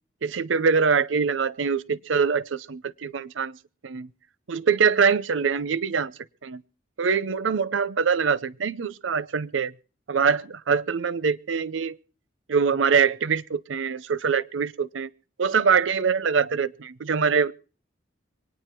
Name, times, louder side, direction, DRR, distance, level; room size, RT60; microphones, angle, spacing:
voice 1, 0.2-3.6 3.8-4.1 4.5-6.1 6.4-6.6 7.0-9.7 10.1-12.0 12.5-15.1 15.4-17.5, right 6 dB, 90° right, 0.6 m, -24 dB
24.5 x 9.6 x 4.5 m
head